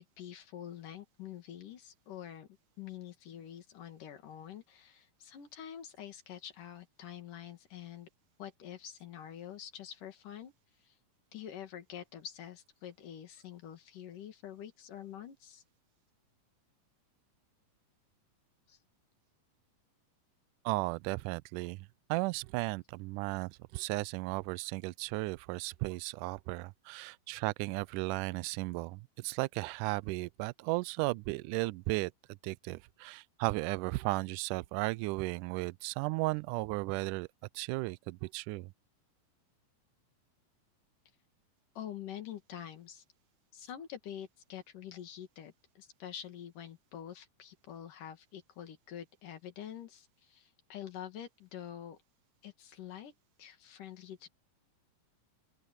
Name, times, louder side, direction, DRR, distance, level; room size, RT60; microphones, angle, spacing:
voice 1, 0.0-2.5 2.8-8.1 8.4-10.5 10.8-11.0 11.3-15.6 18.7-18.8 41.8-43.0 43.5-52.0 52.4-53.1 53.4-54.3, left 10 dB, 65° left, 3.6 m, -46 dB
voice 2, 20.7-37.3 37.5-38.7, right 23 dB, 80° right, 1.9 m, -35 dB
open air
omnidirectional pair, 4.1 m